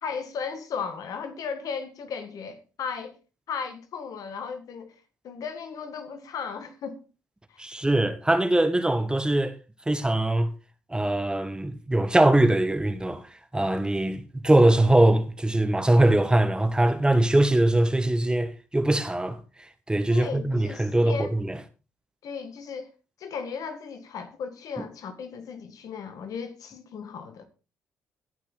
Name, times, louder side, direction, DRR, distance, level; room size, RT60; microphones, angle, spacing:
voice 1, 0.0-3.2 3.5-4.9 5.2-7.1 7.5-7.6 20.1-21.3 22.2-22.9 23.2-27.4, left 6 dB, 65° left, 1.8 m, -35 dB
voice 2, 7.6-9.6 9.9-10.5 10.9-21.6, right 1 dB, 10° right, 1.5 m, -22 dB
17.0 x 5.9 x 4.0 m
hypercardioid pair, 55°, 7 cm